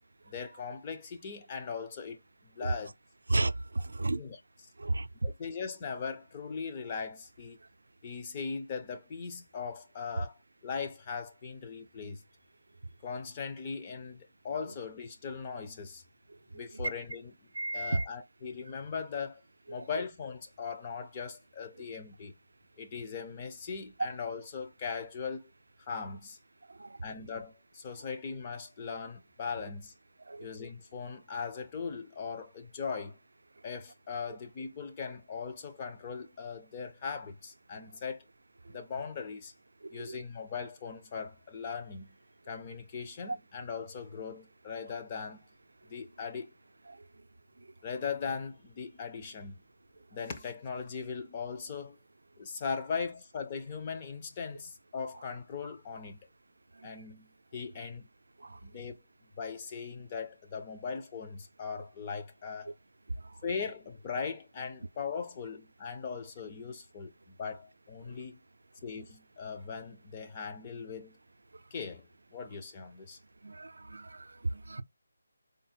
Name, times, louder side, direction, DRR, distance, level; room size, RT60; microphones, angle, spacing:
voice 1, 0.3-2.9 4.1-4.4 5.2-7.6 8.0-12.2 13.0-16.0 16.5-17.3 17.7-19.4 19.7-22.3 22.8-25.5 25.8-26.4 27.0-29.9 30.4-33.2 33.6-38.2 38.7-39.5 39.9-42.1 42.5-45.4 45.9-46.5 47.8-49.6 50.1-52.0 52.4-56.2 56.8-58.1 58.6-59.0 59.4-62.7 63.4-68.4 68.8-71.2 71.7-72.1 72.3-73.2, left 5 dB, 20° left, 0.5 m, -39 dB
voice 2, 3.3-4.2 4.8-5.1 17.5-18.1 26.8-27.0 30.3-30.5 39.9-40.2 57.0-57.1 58.4-58.6 73.4-74.8, right 2 dB, 80° right, 0.4 m, -33 dB
3.8 x 2.1 x 4.2 m
figure-of-eight pair, 175°, 0 cm